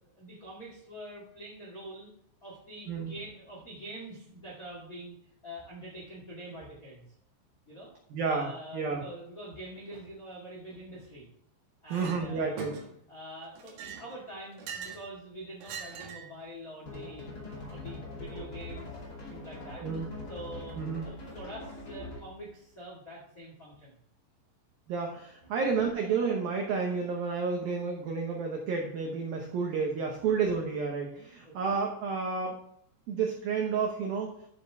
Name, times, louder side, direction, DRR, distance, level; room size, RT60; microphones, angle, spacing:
voice 1, 0.2-2.1 2.4-5.1 5.4-7.0 7.7-7.9 8.2-11.3 11.8-12.6 13.1-17.3 17.5-18.9 19.3-19.8 20.3-20.8 21.0-23.9 31.4-31.5, right 1 dB, 85° left, -4 dB, 0.7 m, -45 dB
voice 2, 8.1-9.0 11.9-12.8 19.8-20.1 20.8-21.0 24.9-32.6 33.1-34.3, right 5 dB, 85° right, 1 dB, 2.0 m, -31 dB
Chink clink, 11.9-12.2 12.6-13.1 13.6-15.1 15.6-16.3, right 6 dB, 60° right, 2.8 m, -42 dB
sound 1, 16.9-22.4, left 2 dB, 30° left, 1.8 m, -42 dB
11.5 x 6.9 x 3.5 m, 0.70 s
omnidirectional pair, 5.9 m